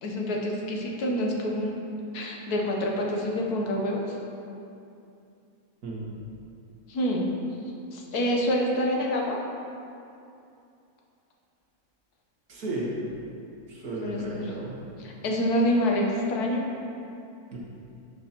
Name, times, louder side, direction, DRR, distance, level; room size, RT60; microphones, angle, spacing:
voice 1, 0.0-1.8 2.1-4.2 6.9-7.3 7.9-9.4 14.0-14.5 15.0-16.7, equal, 90° left, 0 dB, 1.5 m, -27 dB
voice 2, 5.8-6.2 12.5-13.0 13.7-14.8 17.5-17.6, right 2 dB, 75° right, -4 dB, 1.8 m, -34 dB
10.5 x 5.3 x 2.9 m, 2.6 s
omnidirectional pair, 1.6 m